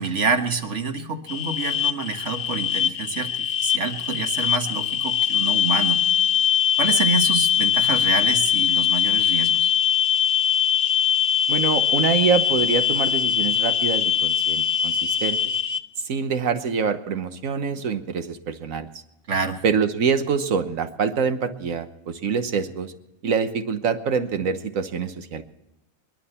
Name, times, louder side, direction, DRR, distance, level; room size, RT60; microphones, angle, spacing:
voice 1, 0.0-6.1 6.8-9.7 19.3-19.6, right 4 dB, 60° right, 5 dB, 1.8 m, -27 dB
sound 1, 1.3-15.8, left 9 dB, 60° left, 0.9 m, -22 dB
voice 2, 11.5-15.4 16.0-18.9 19.6-22.9 23.2-25.4, right 6 dB, 80° right, 9 dB, 1.5 m, -25 dB
27.5 x 11.5 x 4.4 m, 0.91 s
omnidirectional pair, 1.4 m